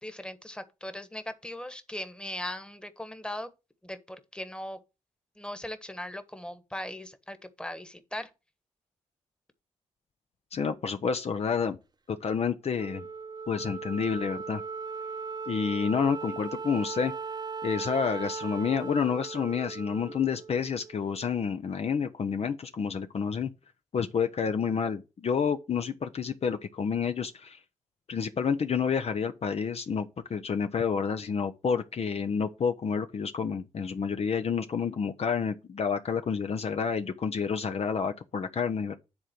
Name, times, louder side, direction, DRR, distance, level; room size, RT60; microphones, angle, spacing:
voice 1, 0.0-3.5 3.8-4.8 5.4-8.3, left 1 dB, 5° left, 1.3 m, -39 dB
voice 2, 10.5-11.8 12.1-13.0 13.5-14.6 15.5-17.1 17.6-23.5 23.9-27.6 28.1-39.0, left 6 dB, 50° left, 0.7 m, -29 dB
Wind instrument woodwind instrument, 12.8-21.3, right 5 dB, 30° right, 0.8 m, -38 dB
9.7 x 3.8 x 5.8 m
supercardioid pair, 55°, 13 cm